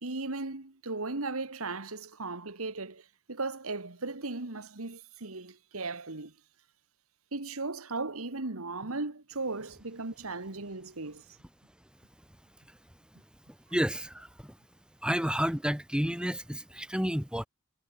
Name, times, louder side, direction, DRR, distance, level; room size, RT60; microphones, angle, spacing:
voice 1, 0.0-6.3 7.3-11.3, right 3 dB, 70° right, 1.9 m, -37 dB
voice 2, 13.7-14.6 15.0-17.5, equal, 5° right, 2.6 m, -30 dB
head